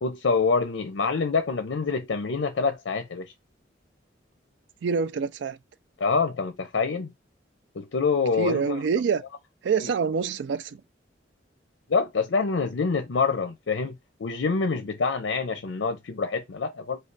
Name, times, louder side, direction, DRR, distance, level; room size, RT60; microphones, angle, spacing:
voice 1, 0.0-3.3 6.0-7.1 7.8-8.6 11.9-17.0, left 4 dB, 85° left, 0.6 m, -26 dB
voice 2, 4.8-5.6 8.4-9.2 9.6-10.8, right 5 dB, 75° right, 0.4 m, -26 dB
3.2 x 2.3 x 3.9 m
head